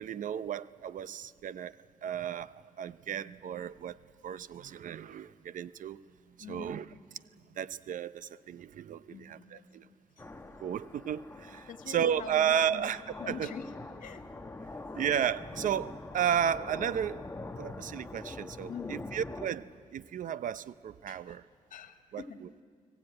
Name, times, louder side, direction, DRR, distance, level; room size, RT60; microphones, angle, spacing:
voice 1, 0.0-6.0 6.5-6.9 7.6-9.9 10.6-13.5 14.9-17.2 17.6-21.4 22.1-22.5, right 9 dB, 70° right, 15 dB, 0.7 m, -33 dB
voice 2, 6.4-7.0 9.1-10.3 11.7-12.9 13.2-13.7 14.0-14.2 18.7-19.1 21.1-21.4 21.7-22.6, left 6 dB, 75° left, 6 dB, 1.9 m, -45 dB
sound 1, 10.2-19.5, left 2 dB, 15° left, 1.3 m, -44 dB
29.5 x 18.5 x 8.9 m, 2.1 s
cardioid pair, 90°, 14 cm